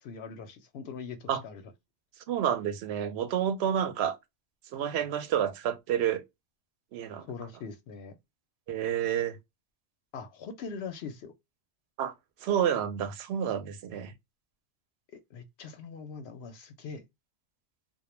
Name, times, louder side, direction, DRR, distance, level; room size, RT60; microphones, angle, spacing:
voice 1, 0.0-1.7 7.3-8.1 10.1-11.3 15.1-17.0, left 5 dB, 65° left, 0.7 m, -42 dB
voice 2, 2.3-4.2 4.7-6.2 6.9-7.2 8.7-9.4 12.0-12.1 12.4-14.1, right 9 dB, 65° right, 0.7 m, -29 dB
2.2 x 2.1 x 3.0 m
omnidirectional pair, 1.3 m